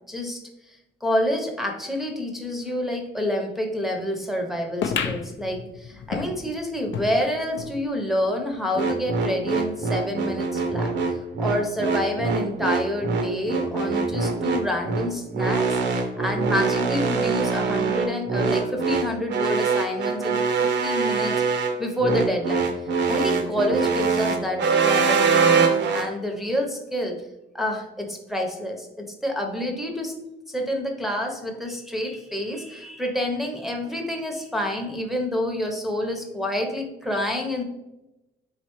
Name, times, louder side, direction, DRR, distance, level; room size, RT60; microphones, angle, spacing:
voice 1, 0.1-22.7 23.1-27.2 27.5-30.1 30.5-37.6, left 1 dB, ahead, 1 dB, 0.7 m, -28 dB
sound 1, 4.8-7.8 8.2-8.3 8.5-8.6 9.4-9.5, left 6 dB, 70° left, 0.5 m, -31 dB
sound 2, 8.7-26.1, right 4 dB, 60° right, 0.6 m, -23 dB
4.1 x 3.2 x 3.0 m, 0.97 s
cardioid pair, 90°, 20 cm